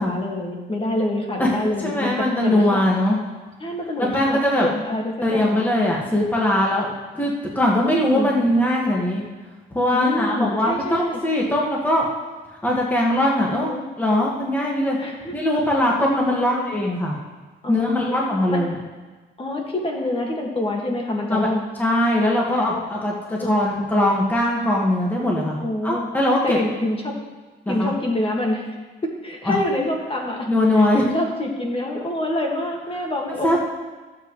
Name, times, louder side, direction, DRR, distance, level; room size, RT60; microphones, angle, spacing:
voice 1, 0.0-2.8 3.6-5.6 7.7-8.3 9.9-11.2 13.4-13.9 15.0-15.3 16.3-16.6 17.6-18.6 19.4-21.6 23.4-23.6 25.6-26.1 26.4-27.1 27.7-28.7 29.0-30.5 30.7-33.6, left 1 dB, 30° left, 0 dB, 1.9 m, -26 dB
voice 2, 1.8-3.2 4.0-4.7 5.2-9.3 9.7-12.0 12.6-13.7 14.0-15.0 15.3-17.1 17.7-18.8 21.3-21.5 21.8-26.6 27.6-27.9 29.4-29.6 30.5-31.0 33.4-33.6, left 1 dB, 10° left, -3 dB, 1.7 m, -21 dB
15.0 x 7.5 x 3.2 m, 1.3 s
cardioid pair, 90°, 20 cm